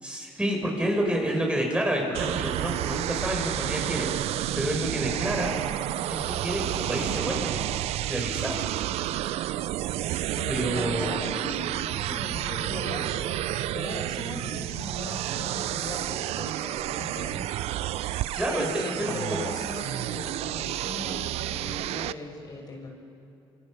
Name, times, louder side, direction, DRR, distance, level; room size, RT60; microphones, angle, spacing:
voice 1, 0.0-5.5 6.1-7.7 8.1-8.6 10.5-11.2 18.3-19.4, right 1 dB, 10° right, 0 dB, 6.5 m, -29 dB
sound 1, 2.1-22.1, right 14 dB, 80° right, 0.6 m, -30 dB
voice 2, 10.4-18.1 18.5-22.9, left 2 dB, 40° left, 1 dB, 6.0 m, -39 dB
29.5 x 26.0 x 6.7 m, 2.7 s
cardioid pair, 85°, 11 cm